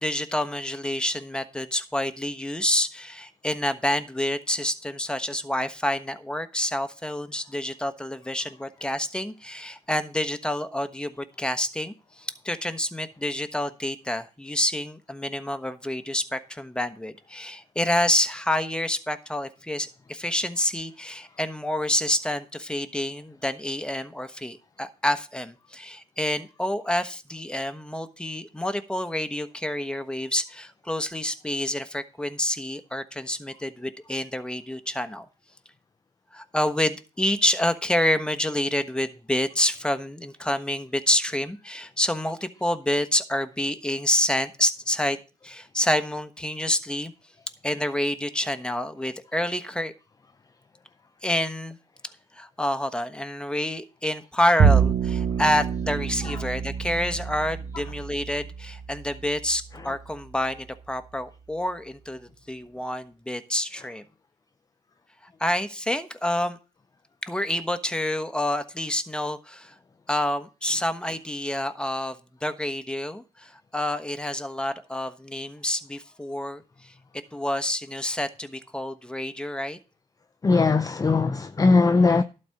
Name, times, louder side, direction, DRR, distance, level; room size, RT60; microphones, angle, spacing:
voice 1, 0.0-35.2 36.3-45.2 45.4-47.1 47.6-49.9 51.2-51.8 52.3-64.0 65.4-66.6 67.2-69.7 70.1-72.2 72.4-76.6 77.3-79.8, left 1 dB, 5° left, 1.2 m, -28 dB
Bowed string instrument, 54.6-61.0, right 6 dB, 65° right, 1.2 m, -27 dB
voice 2, 80.4-82.2, left 3 dB, 25° left, 0.6 m, -19 dB
12.0 x 4.3 x 7.7 m
cardioid pair, 75°, 14 cm